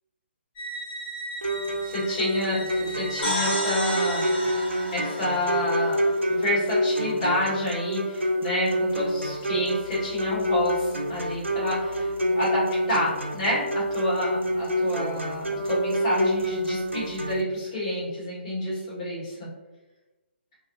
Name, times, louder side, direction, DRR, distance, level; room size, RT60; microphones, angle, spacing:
sound 1, 0.6-5.1, right 1 dB, 20° left, 0.8 m, -38 dB
sound 2, 1.4-17.4, equal, 85° right, 0.5 m, -27 dB
voice 1, 1.8-4.2 4.9-6.0 6.3-19.5, left 1 dB, 35° left, -7 dB, 1.4 m, -29 dB
sound 3, 3.2-6.8, equal, 60° left, 1.3 m, -32 dB
2.6 x 2.6 x 2.6 m, 1.1 s
figure-of-eight pair, 140°, 6 cm